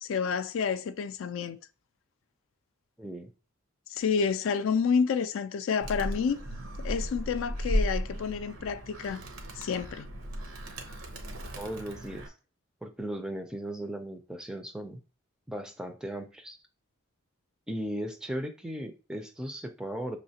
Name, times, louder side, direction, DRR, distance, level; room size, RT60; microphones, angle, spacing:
voice 1, 0.0-1.6 3.9-6.4 6.8-9.2 9.6-10.1, left 6 dB, 65° left, 0.3 m, -29 dB
voice 2, 3.0-3.3 11.6-12.3 12.8-15.0 15.5-16.6 17.7-20.2, equal, 5° right, 0.4 m, -37 dB
Animal, 5.8-12.3, equal, 75° right, 0.8 m, -35 dB
5.6 x 3.2 x 2.7 m
head